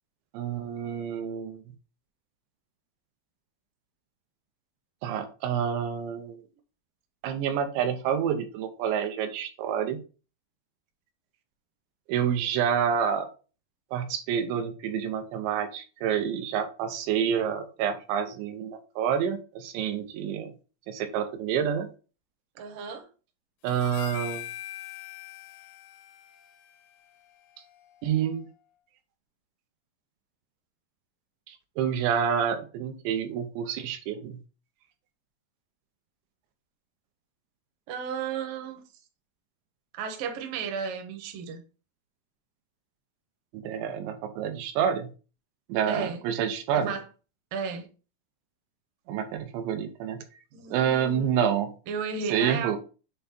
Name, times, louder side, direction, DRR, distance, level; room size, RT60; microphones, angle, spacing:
voice 1, 0.3-1.6 5.0-6.4 7.2-10.0 12.1-13.3 13.9-20.5 20.9-21.9 23.6-24.5 28.0-28.4 31.5-34.4 43.5-45.1 45.7-46.9 49.1-50.2 50.7-51.7 52.3-52.8, right 8 dB, 85° right, 3.0 m, -28 dB
voice 2, 22.6-23.1 37.9-38.8 39.9-41.6 45.9-46.2 46.7-47.0 47.5-47.9 50.5-51.4 51.9-52.8, right 6 dB, 70° right, 2.3 m, -34 dB
Harmonica, 23.7-28.1, left 12 dB, 80° left, 2.8 m, -43 dB
7.9 x 3.4 x 4.0 m
omnidirectional pair, 5.2 m